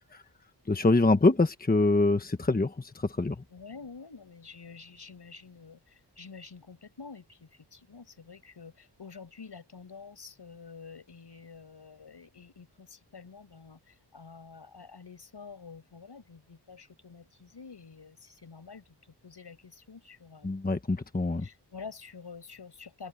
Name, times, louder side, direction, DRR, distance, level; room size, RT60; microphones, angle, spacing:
voice 1, 0.7-3.4 20.4-21.5, left 2 dB, 20° left, 1.2 m, -25 dB
voice 2, 3.5-18.8 19.2-20.5 21.4-23.1, left 5 dB, 75° left, 7.6 m, -48 dB
wide cardioid pair, 110°, 41 cm